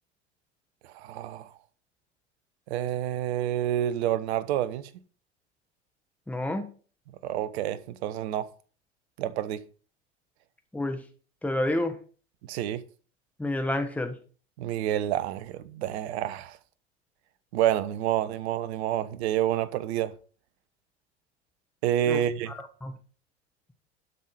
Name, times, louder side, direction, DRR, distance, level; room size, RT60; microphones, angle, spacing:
voice 1, 0.9-1.5 2.7-4.9 7.2-8.5 9.2-9.6 12.5-12.8 14.6-16.6 17.5-20.1 21.8-22.5, right 11 dB, 65° right, 1.1 m, -28 dB
voice 2, 6.3-6.7 10.7-11.0 11.4-12.0 13.4-14.2 22.1-22.2 22.5-22.6 22.8-23.0, left 1 dB, 5° left, 1.5 m, -29 dB
12.0 x 5.7 x 5.1 m
hypercardioid pair, 80°, 35 cm